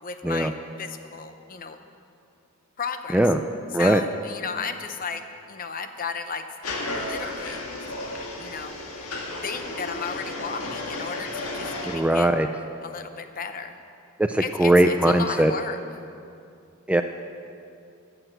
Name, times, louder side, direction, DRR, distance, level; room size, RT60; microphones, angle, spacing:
voice 1, 0.0-0.5 0.8-1.8 2.8-3.2 3.8-6.5 6.9-7.6 8.4-8.7 9.4-12.3 12.8-13.8 14.4-15.8, left 5 dB, 40° left, 8 dB, 0.8 m, -34 dB
sound 1, 6.6-12.0, left 2 dB, 75° left, 1.8 m, -33 dB
voice 2, 11.8-12.5 14.2-15.5 16.9-17.0, right 1 dB, 5° right, 7 dB, 0.3 m, -20 dB
13.5 x 8.0 x 7.8 m, 2.5 s
head